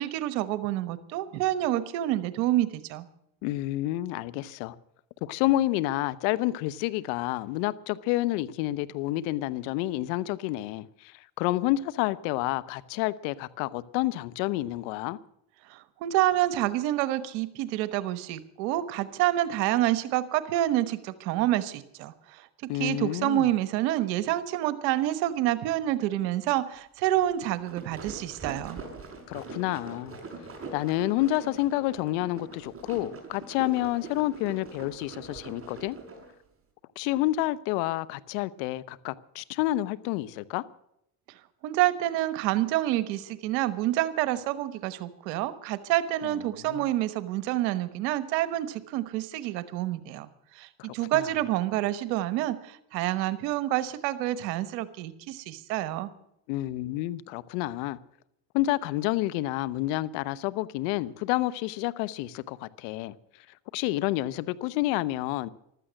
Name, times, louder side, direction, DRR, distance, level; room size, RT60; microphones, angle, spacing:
voice 1, 0.0-3.1 15.7-28.8 41.6-50.3 50.5-56.1, right 14 dB, 85° right, 1.3 m, -28 dB
voice 2, 3.4-4.8 5.2-15.2 22.7-23.5 29.3-30.2 30.7-36.0 37.0-40.6 46.2-46.9 51.1-51.3 56.5-58.0 58.5-63.1 63.7-65.5, left 16 dB, 75° left, 1.0 m, -29 dB
sound 1, 27.4-36.3, right 3 dB, 25° right, 5.6 m, -43 dB
15.0 x 13.0 x 6.4 m
supercardioid pair, 85°, 49 cm